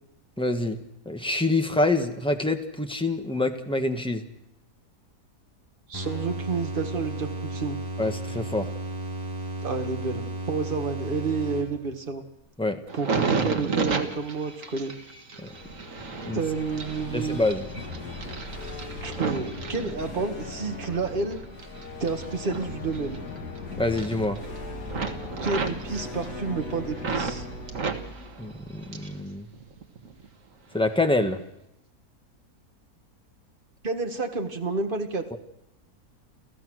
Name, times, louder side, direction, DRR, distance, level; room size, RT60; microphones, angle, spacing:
voice 1, 0.4-0.8 1.0-4.2 8.0-8.7 12.6-12.8 15.4-15.5 16.3-16.4 17.1-17.7 23.8-24.4 28.4-29.5 30.7-31.4 35.3-35.4, left 2 dB, 5° left, 6 dB, 1.3 m, -26 dB
sound 1, 5.9-12.0, right 2 dB, 15° right, 3.8 m, -34 dB
voice 2, 5.9-7.8 9.6-12.2 13.0-14.9 16.3-17.4 19.0-21.4 22.0-23.2 25.4-27.5 33.8-35.2, right 4 dB, 35° right, 5 dB, 1.8 m, -30 dB
sound 2, 12.9-20.5 21.0-23.6 23.8-24.6 24.9-27.4 27.7-29.2 29.5-30.3 30.8-31.0, right 5 dB, 55° right, 2.0 m, -33 dB
sound 3, 15.4-29.4, left 2 dB, 80° left, 2.7 m, -39 dB
29.5 x 14.5 x 6.4 m, 0.83 s
omnidirectional pair, 1.6 m